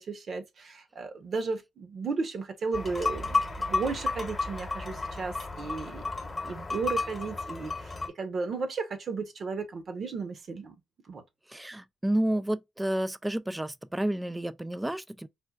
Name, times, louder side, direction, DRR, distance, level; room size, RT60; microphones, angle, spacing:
voice 1, 0.0-10.7 11.1-11.2, right 4 dB, 60° right, 1.0 m, -34 dB
sound 1, 2.7-8.1, left 3 dB, 30° left, 1.0 m, -32 dB
voice 2, 11.5-15.3, right 1 dB, 10° right, 0.4 m, -30 dB
4.4 x 2.4 x 2.3 m
cardioid pair, 70°, 0 cm